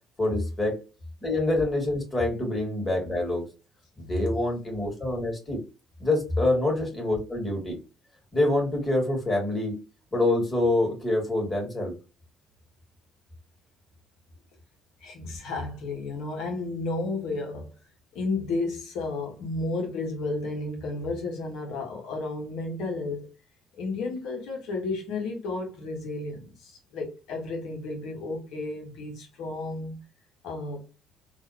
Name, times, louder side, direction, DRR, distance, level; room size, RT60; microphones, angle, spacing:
voice 1, 0.2-0.8 1.2-3.5 4.0-5.6 6.0-7.8 8.3-9.8 10.1-11.9, left 2 dB, 30° left, 2.2 m, -26 dB
voice 2, 15.0-17.7 18.1-23.3 23.8-30.0 30.4-30.8, left 3 dB, 65° left, 1.3 m, -32 dB
3.8 x 2.8 x 2.8 m
hypercardioid pair, 50°, 0 cm